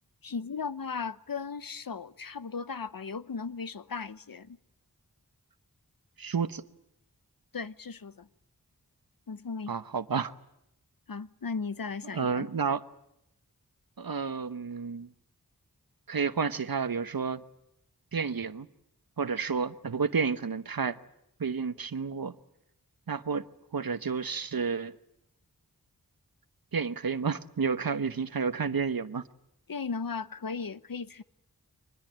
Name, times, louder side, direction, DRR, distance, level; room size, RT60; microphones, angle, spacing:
voice 1, 0.2-4.6 7.5-8.3 9.3-9.8 11.1-12.5 29.7-31.2, left 5 dB, 70° left, 0.9 m, -36 dB
voice 2, 6.2-6.6 9.7-10.3 12.1-12.8 14.0-15.1 16.1-17.4 18.1-18.7 19.2-21.0 21.4-22.4 23.1-23.5 23.7-25.0 26.7-29.2, right 5 dB, 70° right, 1.0 m, -30 dB
24.0 x 20.0 x 8.9 m
wide cardioid pair, 60°, 36 cm